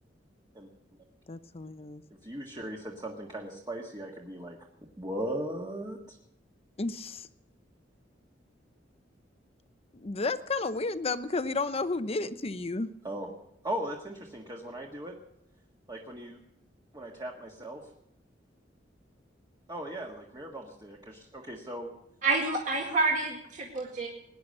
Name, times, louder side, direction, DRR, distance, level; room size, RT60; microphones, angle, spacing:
voice 1, 1.3-2.0 6.8-7.3 9.9-12.9, left 3 dB, 35° left, 12 dB, 0.7 m, -32 dB
voice 2, 2.2-4.6 5.0-6.2 13.0-13.3 13.6-15.1 15.9-16.4 16.9-17.8 19.7-21.9, right 1 dB, 25° right, 0 dB, 1.6 m, -38 dB
voice 3, 22.2-24.1, right 3 dB, 45° right, -1 dB, 2.0 m, -28 dB
19.0 x 10.5 x 6.6 m, 0.77 s
head